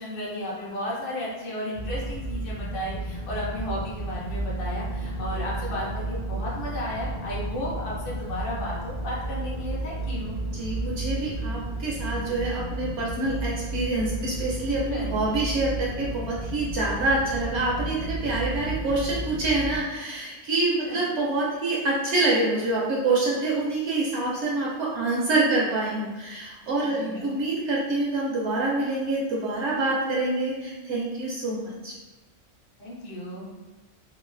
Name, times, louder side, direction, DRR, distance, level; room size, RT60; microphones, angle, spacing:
voice 1, 0.0-10.4 14.9-15.1 20.8-21.0 26.8-27.2 32.8-33.5, left 1 dB, 50° left, -6 dB, 0.8 m, -34 dB
sound 1, 1.7-19.8, right 2 dB, 70° left, 0.4 m, -32 dB
voice 2, 10.5-31.9, right 2 dB, 65° right, -5 dB, 0.8 m, -26 dB
3.0 x 2.3 x 2.4 m, 1.2 s
omnidirectional pair, 1.3 m